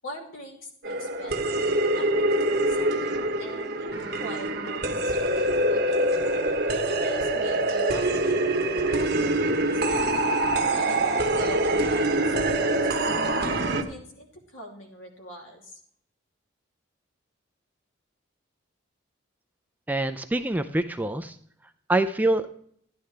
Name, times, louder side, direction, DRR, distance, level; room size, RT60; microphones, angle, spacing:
voice 1, 0.0-6.0 6.7-8.5 9.0-10.1 10.7-15.8, equal, 80° left, 0 dB, 2.9 m, -42 dB
sound 1, 0.8-13.8, right 1 dB, 50° right, 1.0 m, -25 dB
voice 2, 19.9-21.4 21.9-22.6, right 2 dB, 10° right, 9 dB, 0.4 m, -25 dB
12.5 x 10.5 x 3.3 m, 0.64 s
head